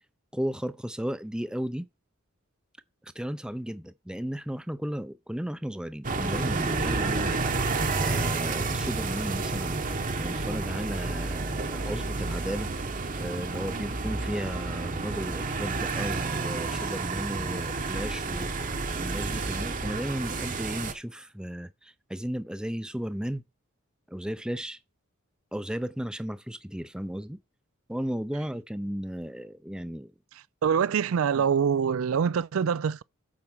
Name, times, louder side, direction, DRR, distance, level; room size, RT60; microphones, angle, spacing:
voice 1, 0.3-1.9 3.0-7.4 8.0-9.8 10.2-12.7 13.2-18.5 18.9-23.4 24.1-24.8 25.5-27.4 27.9-30.1 31.4-31.5, equal, 5° right, 0.5 m, -34 dB
sound 1, 6.0-20.9, right 3 dB, 40° right, 1.0 m, -30 dB
voice 2, 30.6-33.0, right 7 dB, 75° right, 0.4 m, -25 dB
8.6 x 4.4 x 6.1 m
head